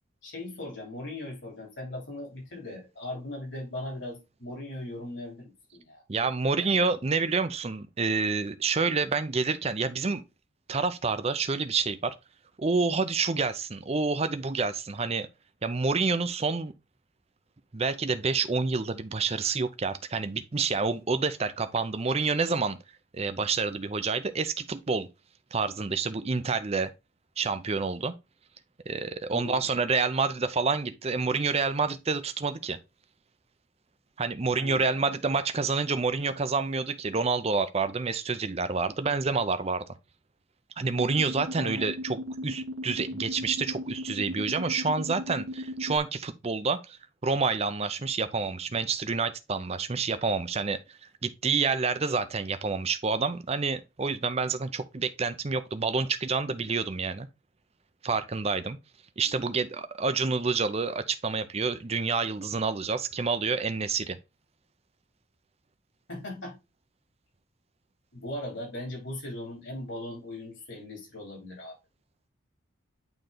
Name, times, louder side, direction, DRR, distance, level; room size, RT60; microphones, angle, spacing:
voice 1, 0.2-6.0 6.6-6.9 29.3-29.6 34.6-35.1 41.6-41.9 59.2-59.5 66.1-66.6 68.1-71.7, left 1 dB, 60° left, 3.2 m, -39 dB
voice 2, 6.1-10.2 10.7-12.1 12.6-15.3 15.6-16.7 17.7-22.8 23.1-25.1 25.5-26.9 27.4-28.1 28.9-32.8 34.2-39.9 40.8-42.2 42.4-47.0 47.2-57.3 58.0-58.8 59.2-64.2, right 4 dB, 30° right, 0.5 m, -28 dB
sound 1, 41.0-46.0, equal, 75° right, 1.1 m, -37 dB
8.9 x 3.2 x 3.8 m
head